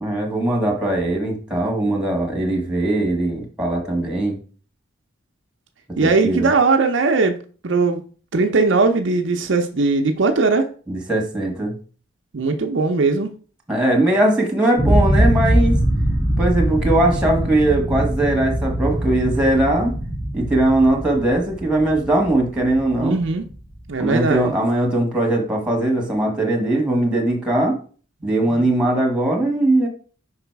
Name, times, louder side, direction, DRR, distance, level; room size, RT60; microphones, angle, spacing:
voice 1, 0.0-4.4 6.0-6.5 10.9-11.7 13.7-15.8 16.4-19.9 20.3-23.2 24.0-27.8 28.2-29.9, right 1 dB, 5° right, 1 dB, 1.4 m, -20 dB
voice 2, 6.0-7.4 7.6-8.0 8.3-10.7 12.3-13.3 23.0-23.4 23.9-24.5 28.5-28.6, right 3 dB, 60° right, 5 dB, 0.6 m, -19 dB
sound 1, 14.8-23.6, right 1 dB, 25° left, 2.1 m, -22 dB
5.3 x 4.0 x 4.5 m, 0.40 s
head